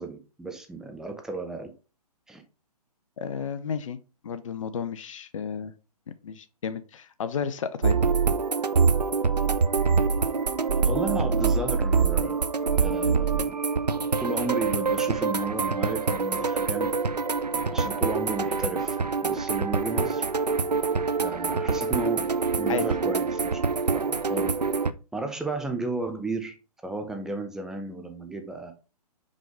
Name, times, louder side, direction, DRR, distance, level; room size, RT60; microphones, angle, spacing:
voice 1, 0.0-1.7 2.3-2.4 10.8-12.4 12.8-13.6 14.2-16.9 17.7-19.0 19.2-20.2 21.2-22.3 22.6-23.6 23.9-24.5 25.1-26.6 26.8-28.7, right 3 dB, 5° right, 0.5 m, -33 dB
voice 2, 3.2-4.0 4.2-5.7 6.1-8.0 22.7-22.9, left 7 dB, 55° left, 0.6 m, -32 dB
sound 1, 7.8-24.9, right 5 dB, 85° right, 0.6 m, -25 dB
5.3 x 5.2 x 3.6 m
figure-of-eight pair, 130°, 20 cm